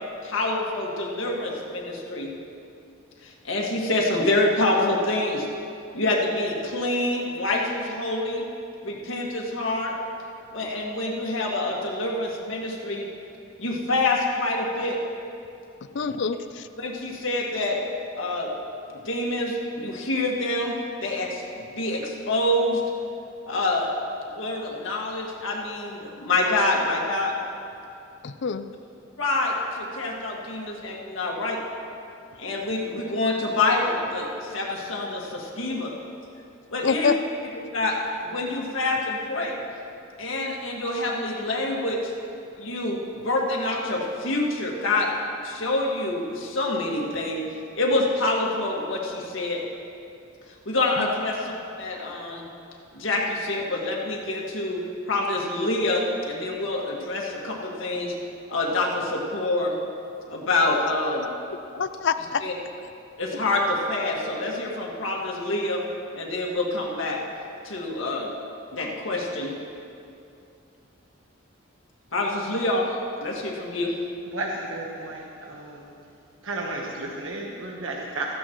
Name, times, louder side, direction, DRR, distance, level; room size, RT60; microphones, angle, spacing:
voice 1, 0.2-2.3 3.2-5.5 5.9-8.5 8.8-9.9 10.5-13.1 13.6-15.0 16.8-17.8 18.2-18.5 19.1-21.4 21.8-22.8 23.5-23.9 24.3-27.3 29.2-31.6 32.4-35.9 36.7-37.1 37.7-38.0 38.2-39.6 40.2-42.1 42.6-43.0 43.2-45.1 45.4-47.4 47.8-49.6 50.7-51.5 51.8-52.5 52.9-54.8 55.1-58.1 58.5-59.7 60.3-61.3 62.4-62.5 63.2-65.8 66.1-67.2 67.6-68.3 68.7-69.5 72.1-73.9, left 2 dB, 75° left, -2 dB, 1.9 m, -26 dB
voice 2, 15.9-16.7 28.2-28.7 36.8-37.2 51.0-51.1 61.7-62.4, left 5 dB, 60° left, 12 dB, 0.5 m, -26 dB
voice 3, 74.3-75.9 76.4-78.3, right 2 dB, 90° right, -1 dB, 1.2 m, -33 dB
15.5 x 14.5 x 3.1 m, 2.6 s
head